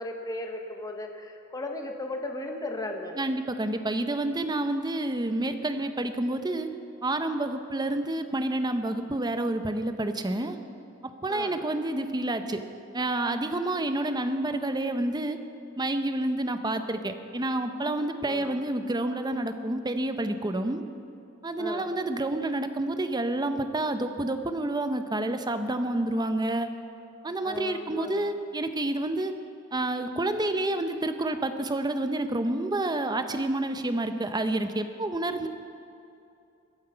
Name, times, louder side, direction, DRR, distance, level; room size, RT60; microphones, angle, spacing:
voice 1, 0.0-3.2 11.3-11.6 18.2-18.6 21.6-22.0 27.4-28.4, left 2 dB, 20° left, 3 dB, 1.2 m, -36 dB
voice 2, 3.2-6.7 7.0-10.6 11.0-12.6 12.9-15.4 15.8-20.8 21.4-26.7 27.2-29.3 29.7-35.5, right 1 dB, 20° right, 8 dB, 0.7 m, -29 dB
21.5 x 8.0 x 5.7 m, 2.7 s
head